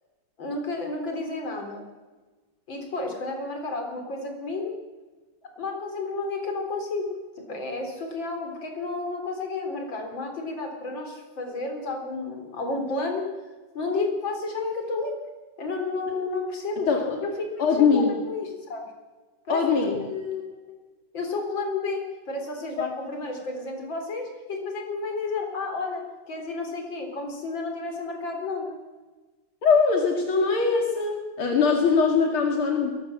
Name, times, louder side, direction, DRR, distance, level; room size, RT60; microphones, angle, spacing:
voice 1, 0.4-1.8 2.7-4.7 5.6-7.0 7.4-13.2 13.7-15.1 15.6-16.9 17.2-18.8 19.5-19.6 20.0-20.8 21.1-28.8, left 3 dB, 65° left, 3 dB, 4.7 m, -31 dB
voice 2, 17.6-18.1 19.5-20.0 22.8-22.9 29.6-32.9, left 5 dB, 90° left, 2 dB, 3.1 m, -22 dB
22.0 x 19.0 x 7.5 m, 1.3 s
omnidirectional pair, 2.3 m